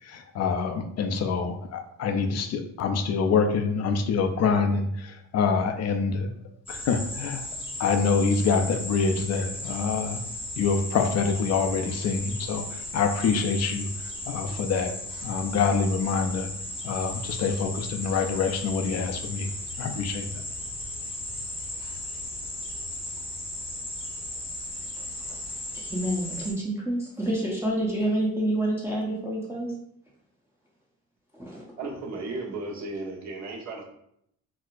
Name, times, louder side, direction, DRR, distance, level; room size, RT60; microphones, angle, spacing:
voice 1, 0.0-6.3 6.7-7.4 7.8-10.2 10.6-13.9 14.3-14.9 15.2-16.5 16.8-19.5 19.8-20.4, left 5 dB, 55° left, 6 dB, 0.5 m, -26 dB
sound 1, 6.7-26.5, left 1 dB, 20° left, 0.8 m, -36 dB
voice 2, 25.7-29.7 31.3-31.6, right 1 dB, 10° right, -5 dB, 0.7 m, -28 dB
voice 3, 31.8-33.8, right 2 dB, 65° right, -4 dB, 1.1 m, -35 dB
4.2 x 2.1 x 2.4 m, 0.74 s
cardioid pair, 90°, 30 cm